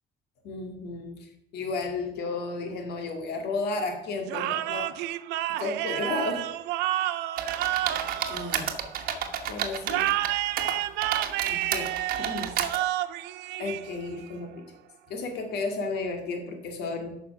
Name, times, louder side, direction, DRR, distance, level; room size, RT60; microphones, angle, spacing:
voice 1, 0.4-5.0 5.6-6.5 7.6-7.8 8.3-8.8 9.5-10.2 11.4-12.6 13.6-14.6 15.1-17.2, left 3 dB, 75° left, 4 dB, 2.1 m, -33 dB
sound 1, 4.3-9.1 9.8-14.2, right 15 dB, 90° right, 0.5 m, -30 dB
sound 2, 7.4-10.3 10.6-12.8, right 8 dB, 60° right, 1.2 m, -31 dB
9.0 x 6.0 x 5.8 m, 0.82 s
cardioid pair, 110°, 17 cm